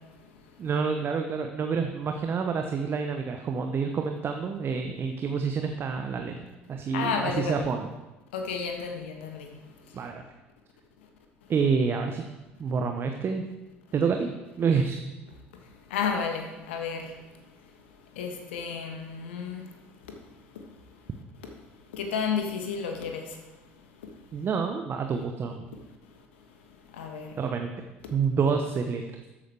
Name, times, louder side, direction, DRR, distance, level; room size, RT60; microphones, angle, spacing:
voice 1, 0.6-7.8 9.9-10.2 11.5-12.2 12.6-13.4 13.9-15.0 24.3-25.6 27.4-27.7 28.1-29.0, right 5 dB, 35° right, 5 dB, 0.9 m, -28 dB
voice 2, 6.9-7.7 8.3-9.5 15.9-17.1 18.2-19.6 21.9-23.3 26.9-27.3, left 6 dB, 70° left, 3 dB, 1.4 m, -31 dB
13.0 x 9.0 x 3.4 m, 1.1 s
figure-of-eight pair, 60°, 6 cm